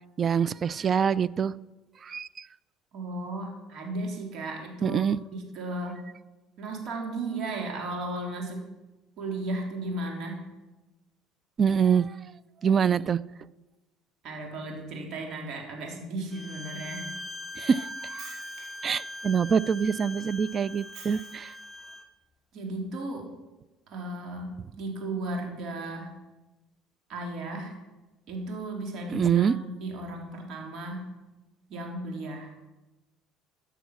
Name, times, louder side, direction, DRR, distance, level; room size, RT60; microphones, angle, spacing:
voice 1, 0.2-1.5 2.0-2.5 4.8-5.2 11.6-12.2 12.6-13.2 17.6-18.4 18.8-21.5 29.1-29.5, right 7 dB, 35° right, 20 dB, 0.4 m, -25 dB
voice 2, 2.9-5.0 5.3-6.0 6.6-8.6 9.2-10.4 14.2-17.1 22.5-23.3 23.9-26.1 27.1-27.7 28.3-31.0 31.7-32.5, right 2 dB, 60° right, 1 dB, 3.8 m, -35 dB
Bowed string instrument, 16.3-22.1, left 1 dB, 20° left, 0.9 m, -41 dB
Shatter, 17.9-18.9 20.7-21.7, right 6 dB, 75° right, 4.6 m, -49 dB
14.5 x 8.0 x 6.3 m, 1.1 s
supercardioid pair, 105°, 0 cm